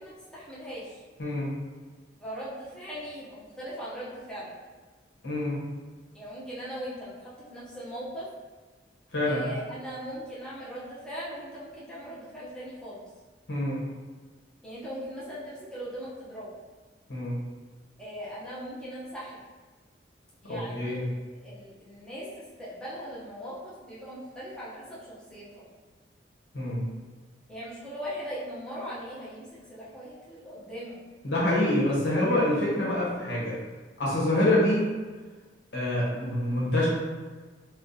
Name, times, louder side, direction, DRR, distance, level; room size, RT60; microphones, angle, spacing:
voice 1, 0.0-1.0 2.2-4.5 6.1-8.3 9.2-13.0 14.6-16.5 18.0-19.4 20.4-21.0 21.4-25.6 27.5-31.0, equal, 5° left, -10 dB, 0.8 m, -39 dB
voice 2, 1.2-1.5 5.2-5.6 9.1-9.5 13.5-13.8 17.1-17.4 20.5-21.0 26.5-26.9 31.2-33.6 34.0-34.8 35.7-36.9, left 1 dB, 70° left, -7 dB, 1.2 m, -26 dB
2.8 x 2.3 x 3.8 m, 1.4 s
head